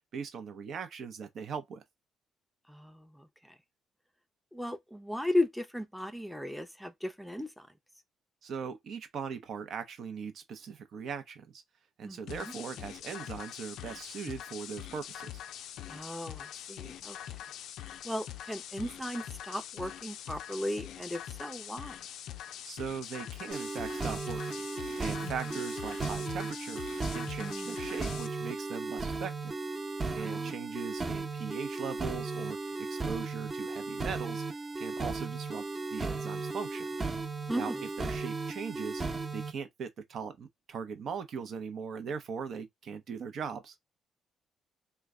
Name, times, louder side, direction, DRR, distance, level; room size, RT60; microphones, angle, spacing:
voice 1, 0.1-1.8 8.4-11.6 12.0-15.4 22.6-24.6 25.0-26.8 27.1-29.6 30.2-34.4 34.8-36.9 37.5-37.7 38.0-39.0 39.3-43.7, right 6 dB, 65° right, 0.7 m, -40 dB
voice 2, 2.7-3.6 4.5-7.7 12.0-12.5 15.9-17.4 18.0-22.0 25.2-25.3 27.4-27.8 30.2-30.6 37.5-37.9, left 1 dB, ahead, 0.6 m, -36 dB
sound 1, 12.3-28.3, left 11 dB, 80° left, 0.3 m, -44 dB
sound 2, 23.5-39.5, right 3 dB, 30° right, 0.9 m, -36 dB
3.1 x 2.3 x 3.6 m
cardioid pair, 90°, 0 cm